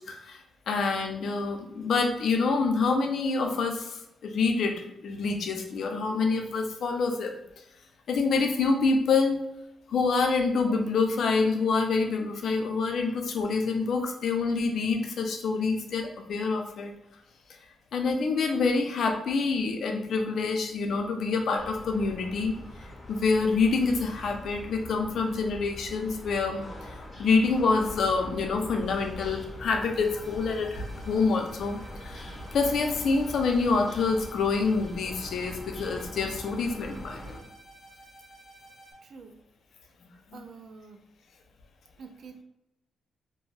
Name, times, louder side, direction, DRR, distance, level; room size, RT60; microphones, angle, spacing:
voice 1, 0.0-7.3 8.1-9.4 9.9-16.9 17.9-22.5 23.1-37.3, left 4 dB, 70° left, 3 dB, 0.5 m, -27 dB
sound 1, 21.6-37.4, left 1 dB, 30° left, 0.8 m, -42 dB
sound 2, 29.9-38.9, right 1 dB, 15° right, 0.6 m, -52 dB
voice 2, 39.0-39.4 40.3-41.0 42.0-42.4, right 5 dB, 65° right, 6 dB, 0.3 m, -47 dB
2.5 x 2.2 x 3.2 m, 0.86 s
cardioid pair, 85°, 0 cm